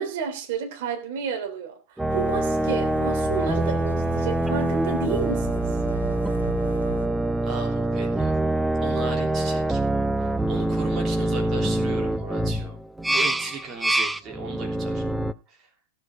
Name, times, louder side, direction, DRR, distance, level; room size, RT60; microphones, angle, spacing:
voice 1, 0.0-1.7 2.1-5.6, right 6 dB, 50° right, 4 dB, 3.3 m, -30 dB
sound 1, 2.0-15.3, right 2 dB, 5° right, 0.6 m, -25 dB
sound 2, 2.1-7.1, left 5 dB, 70° left, 1.3 m, -39 dB
voice 2, 7.4-8.3 8.8-9.8 10.2-12.8 13.1-15.0 15.5-15.7, right 5 dB, 30° right, 1 dB, 3.3 m, -37 dB
16.0 x 7.9 x 5.2 m, 0.35 s
figure-of-eight pair, 90°, 0 cm